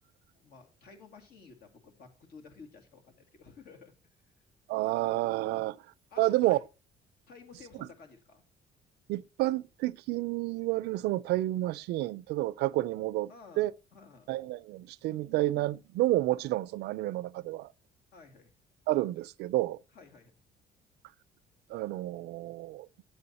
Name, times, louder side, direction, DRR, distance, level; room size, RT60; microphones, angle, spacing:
voice 1, 0.3-3.9 5.5-5.6 6.1-6.6 7.3-8.4 13.3-14.3 18.1-18.5 19.9-20.3, left 4 dB, 65° left, 2.2 m, -53 dB
voice 2, 4.7-5.8 6.2-6.6 9.1-13.3 13.6-13.7 14.3-17.7 18.9-19.8 21.7-22.9, right 17 dB, 80° right, 0.4 m, -30 dB
9.1 x 7.8 x 4.1 m
cardioid pair, 110°, 17 cm